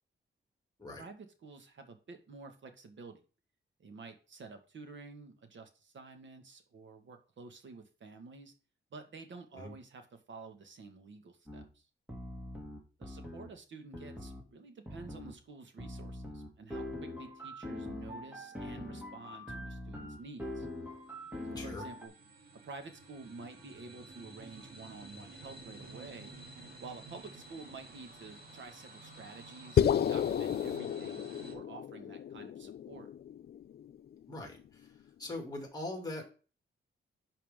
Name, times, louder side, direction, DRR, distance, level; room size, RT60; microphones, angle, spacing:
voice 1, 1.0-3.2 3.8-8.5 8.9-11.9 13.0-20.7 21.5-22.1 22.6-26.3 26.8-33.1, right 4 dB, 70° right, 6 dB, 1.7 m, -50 dB
sound 1, 11.5-11.6 12.1-13.5 13.9-14.4 14.9-15.3 15.8-22.1, left 1 dB, 5° right, 2.4 m, -43 dB
sound 2, 20.1-31.6, right 2 dB, 50° right, 3.0 m, -52 dB
sound 3, 29.8-34.1, left 9 dB, 55° left, 0.4 m, -32 dB
voice 2, 34.3-34.6 35.2-36.3, left 2 dB, 20° left, 2 dB, 2.7 m, -41 dB
11.0 x 5.5 x 3.7 m, 0.35 s
wide cardioid pair, 155°, 20 cm